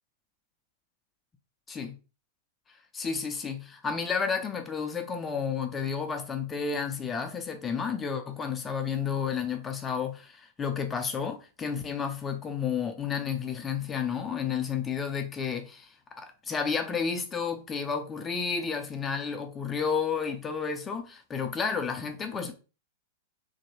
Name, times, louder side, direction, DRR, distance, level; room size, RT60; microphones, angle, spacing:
voice 1, 1.7-2.0 2.7-22.5, left 6 dB, 20° left, 0.5 m, -31 dB
3.0 x 2.7 x 2.7 m
hypercardioid pair, 100°, 0 cm